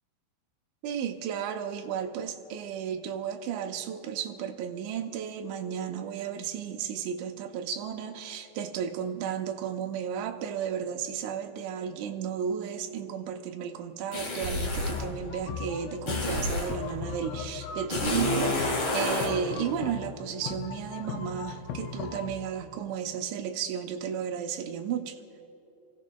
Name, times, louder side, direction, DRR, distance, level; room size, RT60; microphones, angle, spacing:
voice 1, 0.8-25.2, right 8 dB, 80° right, 5 dB, 2.9 m, -33 dB
sound 1, 14.1-15.1 16.1-16.8 17.9-19.3, left 1 dB, 50° left, 1.7 m, -29 dB
sound 2, 14.9-22.3, left 7 dB, 80° left, 3.0 m, -38 dB
30.0 x 16.0 x 2.2 m, 2.7 s
omnidirectional pair, 5.6 m